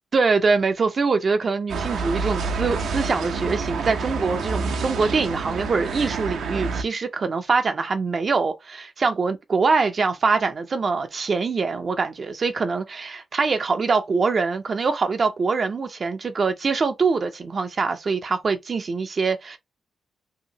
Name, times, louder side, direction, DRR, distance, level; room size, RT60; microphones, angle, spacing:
voice 1, 0.1-19.6, right 4 dB, 40° right, 0.4 m, -23 dB
sound 1, 1.7-6.8, right 4 dB, 90° right, 0.6 m, -28 dB
2.8 x 2.8 x 2.6 m
cardioid pair, 115°, 0 cm